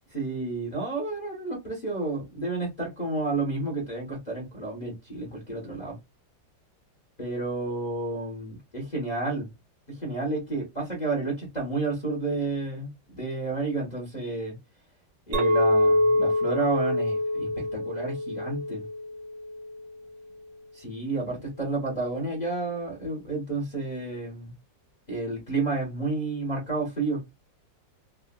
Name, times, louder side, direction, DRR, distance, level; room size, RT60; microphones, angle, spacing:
voice 1, 0.1-6.0 7.2-9.5 9.9-14.6 15.3-18.8 20.8-24.5 25.1-27.2, right 3 dB, 30° left, 0.9 m, -31 dB
Chink clink, 15.3-19.8, left 1 dB, 70° right, 1.6 m, -25 dB
3.5 x 2.3 x 2.2 m
omnidirectional pair, 2.0 m